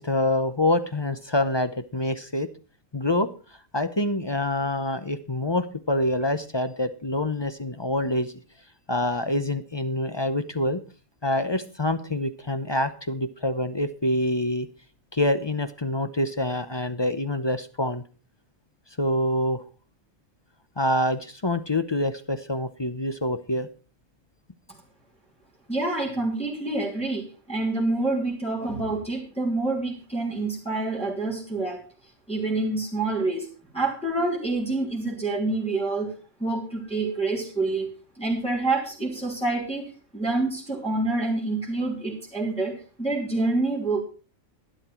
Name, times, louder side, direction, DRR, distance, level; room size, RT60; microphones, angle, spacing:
voice 1, 0.0-2.5 2.9-3.3 3.7-8.3 8.9-10.8 11.2-14.7 15.1-18.0 19.0-19.6 20.8-23.7, left 1 dB, 25° left, 11 dB, 0.6 m, -26 dB
voice 2, 25.7-31.8 32.3-33.5 33.7-44.0, right 2 dB, 5° left, -4 dB, 3.4 m, -27 dB
12.0 x 11.0 x 4.4 m, 0.36 s
omnidirectional pair, 1.4 m